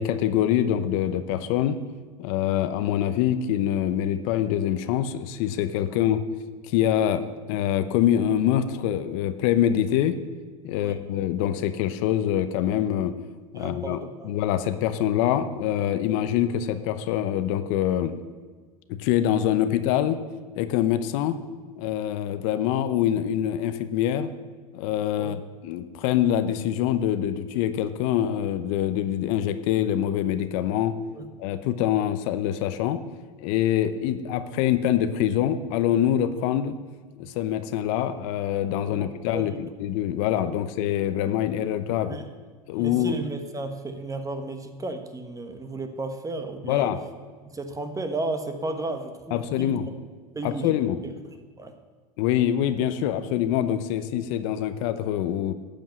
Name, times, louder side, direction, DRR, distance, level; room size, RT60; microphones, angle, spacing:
voice 1, 0.0-1.8 2.2-6.2 6.6-10.2 10.6-13.1 13.5-14.0 14.2-18.2 18.9-20.2 20.6-21.4 21.8-24.3 24.7-30.9 31.4-33.0 33.4-36.8 37.2-42.2 42.7-43.2 46.6-47.0 49.3-49.9 50.4-51.0 52.2-55.5, left 11 dB, 65° left, 11 dB, 0.7 m, -25 dB
voice 2, 13.5-14.3 25.2-25.4 31.1-31.3 38.9-39.1 39.3-39.6 42.1-42.3 42.7-46.9 47.5-49.8 50.3-50.8 51.0-51.1 51.6-51.7, right 2 dB, 20° right, 7 dB, 1.2 m, -33 dB
11.0 x 5.3 x 7.5 m, 1.5 s
hypercardioid pair, 95°, 19 cm